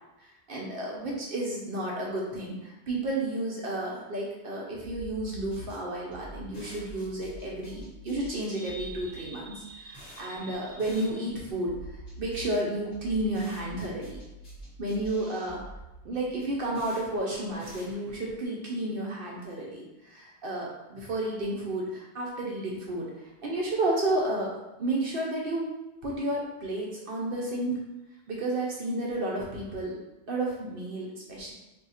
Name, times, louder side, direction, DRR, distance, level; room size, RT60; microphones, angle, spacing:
voice 1, 0.2-11.8 12.2-14.2 14.8-15.6 16.0-23.1 23.4-24.5 24.8-25.7 26.0-27.8 28.3-30.0 30.3-31.5, right 1 dB, 60° right, -3 dB, 0.8 m, -32 dB
sound 1, 4.8-18.4, right 1 dB, 50° left, 1.4 m, -47 dB
2.7 x 2.4 x 4.1 m, 1.0 s
omnidirectional pair, 1.2 m